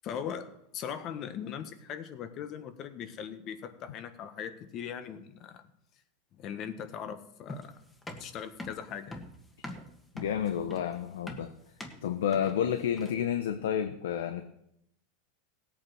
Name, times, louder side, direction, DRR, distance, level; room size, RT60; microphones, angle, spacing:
voice 1, 0.0-5.6 6.3-7.8 8.2-9.2, left 8 dB, 40° left, 9 dB, 1.4 m, -40 dB
sound 1, 7.5-13.3, left 1 dB, 10° left, 1.8 m, -44 dB
voice 2, 10.1-11.5 12.0-14.4, left 9 dB, 85° left, 8 dB, 1.0 m, -30 dB
17.0 x 8.7 x 6.3 m, 0.79 s
supercardioid pair, 140°, 0 cm